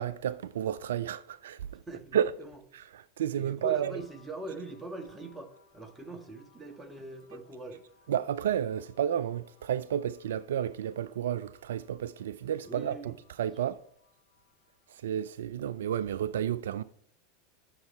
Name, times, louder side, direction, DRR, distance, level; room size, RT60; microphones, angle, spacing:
voice 1, 0.0-1.8 2.1-2.3 2.7-3.9 8.1-13.8 14.9-16.8, right 10 dB, 75° right, 0.3 m, -31 dB
voice 2, 1.8-2.6 3.4-7.8 12.6-13.1, right 2 dB, 15° right, 1.6 m, -42 dB
sound 1, 3.6-15.2, left 5 dB, 65° left, 1.3 m, -65 dB
9.5 x 6.7 x 4.3 m
hypercardioid pair, 85°, 0 cm